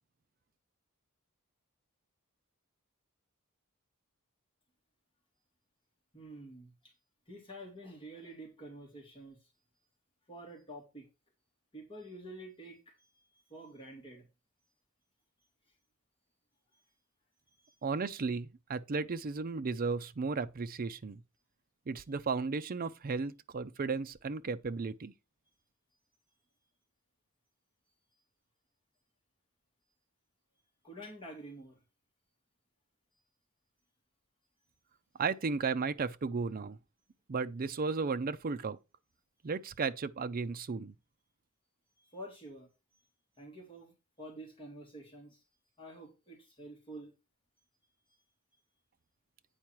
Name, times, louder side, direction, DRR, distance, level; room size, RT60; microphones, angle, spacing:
voice 1, 6.1-6.9 7.3-9.5 10.3-11.1 11.7-14.3 16.7-16.8 17.5-17.8 30.8-31.8 42.0-43.0 43.4-45.4 45.8-47.1, right 1 dB, 25° left, 2.5 m, -49 dB
voice 2, 17.8-21.2 21.9-25.1 35.2-36.8 37.3-38.8 39.4-40.9, right 4 dB, 40° right, 0.5 m, -34 dB
8.8 x 4.7 x 4.5 m
head